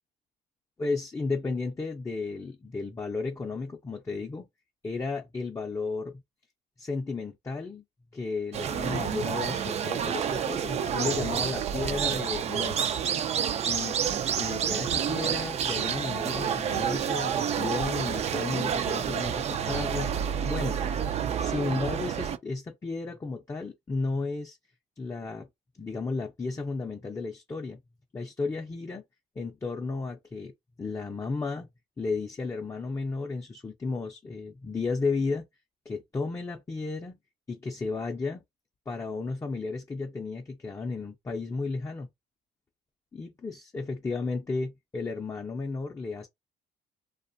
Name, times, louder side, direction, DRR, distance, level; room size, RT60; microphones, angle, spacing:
voice 1, 0.8-4.5 4.8-6.2 6.8-7.8 8.1-12.9 13.7-14.0 14.4-20.1 20.4-20.8 21.4-24.6 25.0-25.5 25.8-27.8 28.1-29.0 29.4-30.5 30.8-31.7 32.0-35.5 35.9-37.2 37.5-38.4 38.9-42.1 43.1-46.3, left 3 dB, 20° left, 0.5 m, -33 dB
sound 1, 8.5-22.4, right 8 dB, 40° right, 0.4 m, -29 dB
2.6 x 2.3 x 2.5 m
cardioid pair, 110°, 17 cm